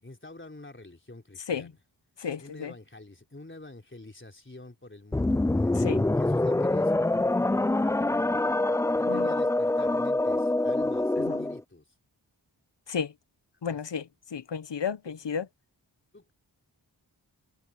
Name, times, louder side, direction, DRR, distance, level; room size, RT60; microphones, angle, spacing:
voice 1, 0.0-1.8 2.4-7.0 8.9-11.9 13.6-13.8 15.0-15.3 16.1-16.3, left 2 dB, 25° left, 3.7 m, -48 dB
voice 2, 2.2-2.7 5.7-6.0 9.1-9.3 11.3-11.4 12.9-13.1 13.6-15.5, left 6 dB, 70° left, 1.2 m, -33 dB
sound 1, 5.1-11.6, left 2 dB, 10° left, 0.3 m, -25 dB
cardioid pair, 45°, 44 cm